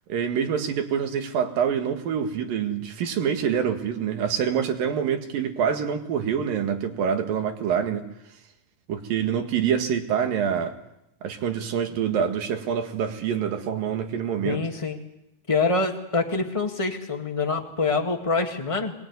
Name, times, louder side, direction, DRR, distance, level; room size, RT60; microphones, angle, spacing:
voice 1, 0.1-8.0 8.9-10.8 11.2-14.6, right 8 dB, 90° right, 6 dB, 3.6 m, -26 dB
voice 2, 14.4-15.0 15.5-18.9, left 3 dB, 15° left, 4 dB, 1.2 m, -25 dB
23.5 x 20.0 x 9.6 m, 0.85 s
omnidirectional pair, 3.9 m